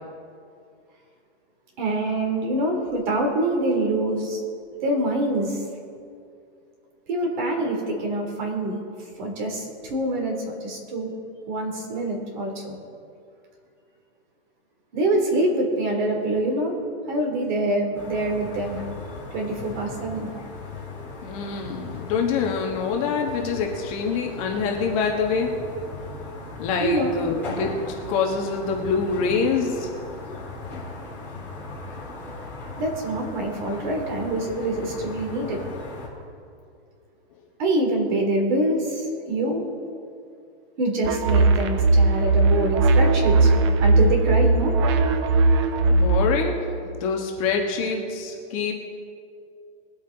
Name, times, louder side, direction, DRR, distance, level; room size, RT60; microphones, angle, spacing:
voice 1, 1.8-4.4 4.8-5.6 7.1-8.8 9.2-11.1 11.5-12.8 14.9-16.8 17.1-18.8 19.3-20.3 26.8-27.1 32.8-35.6 37.6-39.6 40.8-44.7, right 1 dB, 45° right, 2 dB, 2.9 m, -25 dB
sound 1, 17.9-36.1, left 3 dB, 5° left, 2.9 m, -38 dB
voice 2, 21.2-25.5 26.6-29.9 45.9-46.6 46.8-48.7, left 5 dB, 30° left, 1 dB, 1.3 m, -25 dB
sound 2, 41.0-46.3, right 3 dB, 25° right, 0.5 m, -18 dB
22.0 x 8.7 x 3.9 m, 2.4 s
hypercardioid pair, 170°, 34 cm